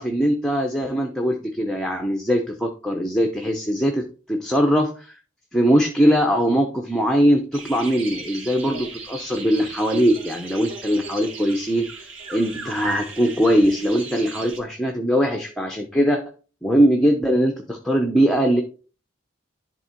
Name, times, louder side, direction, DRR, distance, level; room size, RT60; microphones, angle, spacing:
voice 1, 0.0-5.1 5.5-16.2 16.6-18.6, equal, 5° left, 3 dB, 0.6 m, -21 dB
sound 1, 7.5-14.6, right 3 dB, 80° right, 2.3 m, -37 dB
11.0 x 3.7 x 4.4 m, 0.37 s
head